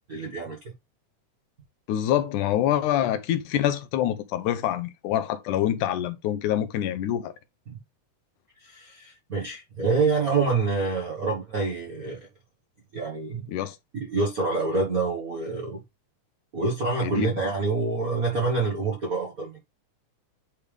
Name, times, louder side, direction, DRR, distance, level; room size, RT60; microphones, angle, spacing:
voice 1, 0.1-0.7 7.7-7.8 8.6-12.3 12.9-13.4 14.1-15.8 16.5-19.6, right 3 dB, 55° right, 0.9 m, -27 dB
voice 2, 1.9-7.3 13.5-13.8 17.0-17.3, left 11 dB, 75° left, 2.1 m, -26 dB
10.0 x 3.5 x 3.4 m
omnidirectional pair, 3.8 m